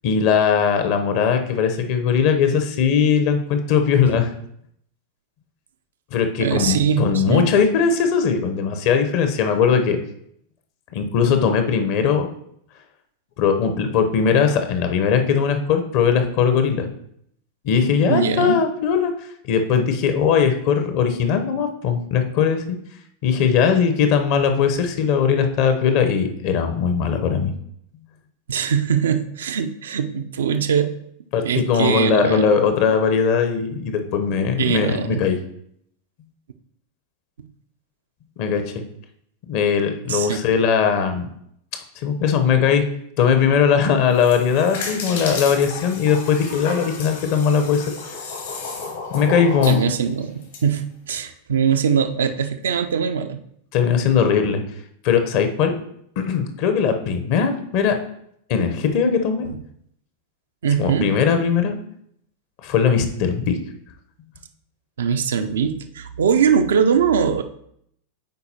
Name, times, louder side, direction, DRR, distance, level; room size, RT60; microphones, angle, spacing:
voice 1, 0.0-4.3 6.1-10.0 10.9-12.3 13.4-16.9 17.6-19.1 19.4-22.8 23.2-27.5 31.3-35.4 38.4-38.8 39.5-41.3 42.0-42.9 43.2-47.8 49.1-49.8 53.7-54.6 55.0-55.8 56.2-58.0 58.5-59.5 60.8-61.8 62.6-63.6, left 6 dB, 45° left, 7 dB, 0.8 m, -19 dB
voice 2, 6.4-7.5 18.1-18.6 28.5-30.9 31.4-32.5 34.6-35.2 37.4-37.5 40.1-40.4 49.7-53.4 59.4-59.6 60.6-61.1 65.0-67.4, right 7 dB, 65° right, 8 dB, 0.4 m, -21 dB
sound 1, 44.0-50.6, left 4 dB, 65° left, 1.5 m, -33 dB
9.4 x 4.1 x 2.8 m, 0.71 s
figure-of-eight pair, 90°, 0 cm